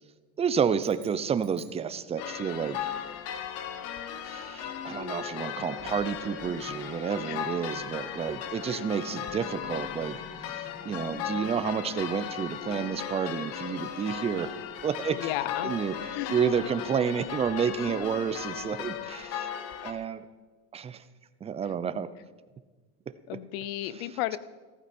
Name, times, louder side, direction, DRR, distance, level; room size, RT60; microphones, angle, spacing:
voice 1, 0.4-2.9 4.3-14.5 14.8-15.3 15.6-19.5 19.8-20.2 20.7-21.0 21.4-22.1 23.1-23.2, right 7 dB, 20° right, 13 dB, 0.6 m, -30 dB
sound 1, 0.8-2.5, right 11 dB, 60° right, 2.1 m, -57 dB
sound 2, 2.2-19.9, left 9 dB, 50° left, 1.2 m, -37 dB
sound 3, 5.5-13.4, left 3 dB, 10° left, 1.1 m, -53 dB
voice 2, 15.1-15.7 16.1-16.4 19.8-20.0 23.3-24.4, left 15 dB, 70° left, 17 dB, 0.8 m, -34 dB
15.0 x 14.0 x 4.4 m, 1.3 s
supercardioid pair, 130°, 31 cm